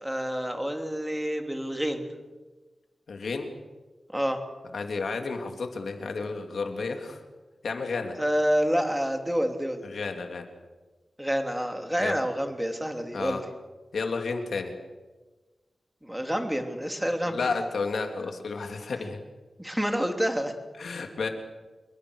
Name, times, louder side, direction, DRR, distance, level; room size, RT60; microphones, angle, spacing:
voice 1, 0.0-2.1 4.1-4.4 8.2-9.8 11.2-13.4 16.0-17.4 19.6-20.5, equal, 5° right, 5 dB, 3.0 m, -28 dB
voice 2, 3.1-3.5 4.7-7.2 7.6-8.2 9.8-10.4 12.0-12.2 13.1-13.4 13.9-14.7 17.3-19.2 20.8-21.3, left 4 dB, 80° left, 4 dB, 3.3 m, -31 dB
27.0 x 22.5 x 6.6 m, 1.2 s
wide cardioid pair, 90°, 0 cm